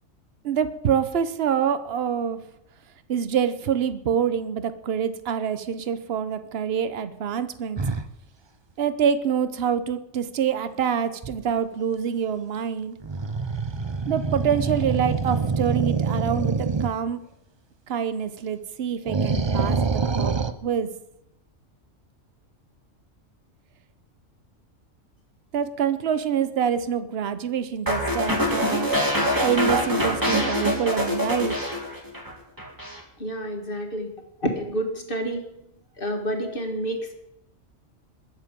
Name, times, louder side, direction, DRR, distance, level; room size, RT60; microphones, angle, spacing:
voice 1, 0.4-2.4 3.1-7.8 8.8-12.9 14.1-17.2 17.9-20.3 20.6-20.9 25.5-28.9 29.4-31.6, right 8 dB, 55° right, 12 dB, 1.0 m, -26 dB
sound 1, 7.8-8.1 11.2-11.5 13.0-16.9 19.1-20.5, right 4 dB, 35° right, 0.5 m, -25 dB
sound 2, 27.9-32.3 32.6-33.0, equal, 15° right, 2.2 m, -24 dB
voice 2, 33.2-34.1 34.4-35.5 36.0-37.1, equal, 45° left, 3 dB, 1.8 m, -29 dB
21.0 x 7.5 x 5.2 m, 0.84 s
omnidirectional pair, 1.3 m